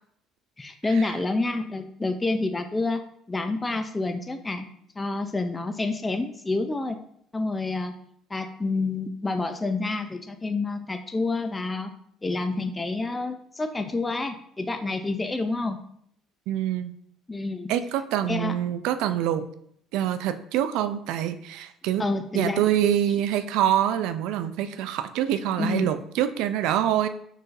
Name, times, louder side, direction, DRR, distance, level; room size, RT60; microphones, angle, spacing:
voice 1, 0.6-3.0 3.3-4.7 5.0-7.0 7.3-7.9 8.3-11.9 12.2-15.8 17.3-17.7 18.3-18.6 22.0-22.7 25.6-25.9, left 3 dB, 20° left, 7 dB, 0.4 m, -28 dB
voice 2, 16.5-16.9 17.7-19.5 19.9-22.0 22.3-27.1, right 11 dB, 75° right, 11 dB, 0.3 m, -25 dB
4.5 x 3.1 x 2.5 m, 0.68 s
supercardioid pair, 80°, 0 cm